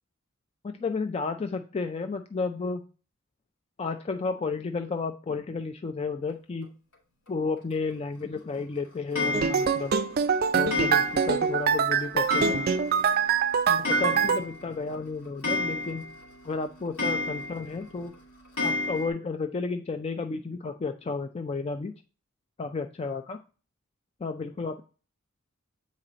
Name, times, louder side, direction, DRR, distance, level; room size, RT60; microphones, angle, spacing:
voice 1, 0.6-2.8 3.8-6.7 7.3-9.9 10.5-12.6 13.7-16.1 16.4-18.1 18.6-21.9 22.6-23.4 24.2-24.8, left 4 dB, 30° left, 7 dB, 0.3 m, -32 dB
Clock, 9.1-9.9 10.7-11.4 11.7-11.8 12.3-13.1 13.3-13.4 13.7-14.6 14.9-15.0 15.4-16.2 17.0-17.7 18.6-19.1, left 2 dB, 85° left, 2.1 m, -30 dB
sound 1, 9.3-14.4, right 6 dB, 45° right, 0.4 m, -24 dB
7.5 x 4.1 x 3.9 m, 0.36 s
head